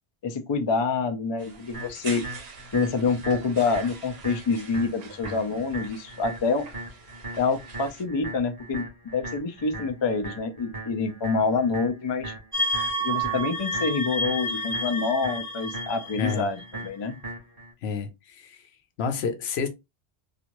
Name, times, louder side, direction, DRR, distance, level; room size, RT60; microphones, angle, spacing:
voice 1, 0.2-2.2 2.7-6.7 7.4-8.8 9.1-12.3 13.0-17.2, left 4 dB, 45° left, 0.3 m, -26 dB
sound 1, 1.4-8.0, right 5 dB, 70° right, 0.8 m, -45 dB
sound 2, 1.7-17.7, right 2 dB, 20° right, 1.4 m, -40 dB
sound 3, 12.5-16.9, equal, 20° left, 1.6 m, -30 dB
voice 2, 16.2-16.5 17.8-18.6 19.0-19.7, left 5 dB, 80° left, 0.9 m, -29 dB
3.0 x 2.4 x 2.5 m
omnidirectional pair, 1.1 m